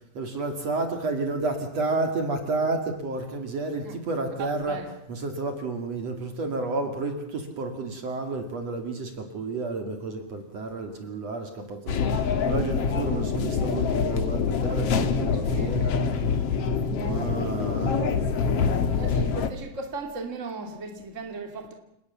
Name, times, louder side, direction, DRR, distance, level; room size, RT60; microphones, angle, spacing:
voice 1, 0.1-4.8 5.1-15.9 17.0-18.3, right 3 dB, 50° right, 3.2 m, -31 dB
voice 2, 4.3-4.9 12.8-13.0 13.2-13.4 15.3-15.8 18.9-21.7, right 3 dB, 25° right, 2.7 m, -37 dB
sound 1, 11.9-19.5, left 5 dB, 55° left, 2.1 m, -25 dB
29.0 x 19.0 x 7.1 m
omnidirectional pair, 4.1 m